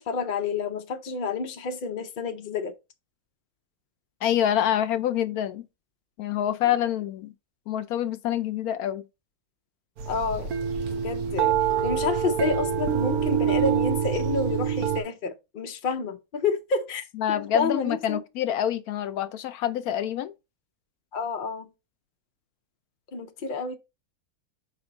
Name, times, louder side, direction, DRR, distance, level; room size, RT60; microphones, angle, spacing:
voice 1, 0.0-2.7 10.1-10.5 10.9-11.5 11.8-18.2 21.1-21.7 23.1-23.8, left 4 dB, 50° left, 0.6 m, -29 dB
voice 2, 4.2-5.6 6.2-7.3 7.7-9.0 17.2-20.3, left 11 dB, 75° left, 1.0 m, -26 dB
sound 1, 10.0-15.0, right 8 dB, 75° right, 1.3 m, -26 dB
5.8 x 4.4 x 3.9 m
omnidirectional pair, 1.6 m